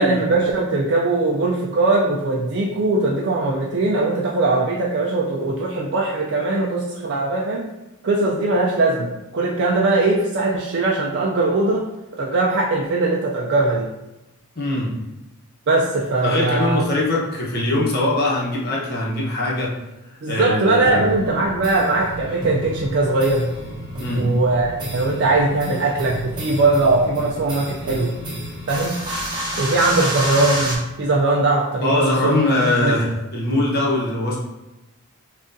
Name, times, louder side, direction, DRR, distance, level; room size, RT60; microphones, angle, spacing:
voice 1, 0.0-7.7 8.0-11.9 12.2-13.9 15.7-16.8 20.2-23.5 24.1-28.2 28.7-29.0 29.6-32.4 32.8-33.0, right 2 dB, 55° right, -2 dB, 0.4 m, -20 dB
voice 2, 14.6-14.9 16.2-19.7 20.3-21.1 24.0-24.3 31.8-34.4, left 1 dB, 45° left, -4 dB, 1.0 m, -22 dB
sound 1, 20.8-30.8, right 1 dB, 20° right, 0.9 m, -30 dB
6.1 x 2.4 x 2.6 m, 0.98 s
head